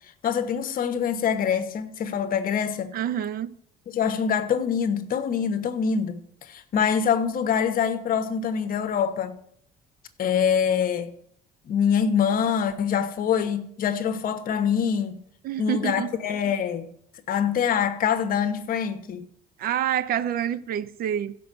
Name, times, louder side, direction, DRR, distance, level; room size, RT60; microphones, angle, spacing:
voice 1, 0.2-2.9 3.9-6.2 6.5-9.4 10.2-11.1 11.7-15.2 15.6-16.9 17.3-19.3, left 7 dB, 55° left, 1.1 m, -25 dB
voice 2, 2.9-3.5 15.4-16.1 19.6-21.4, right 10 dB, 60° right, 0.7 m, -27 dB
15.0 x 5.4 x 6.8 m
cardioid pair, 110°, 17 cm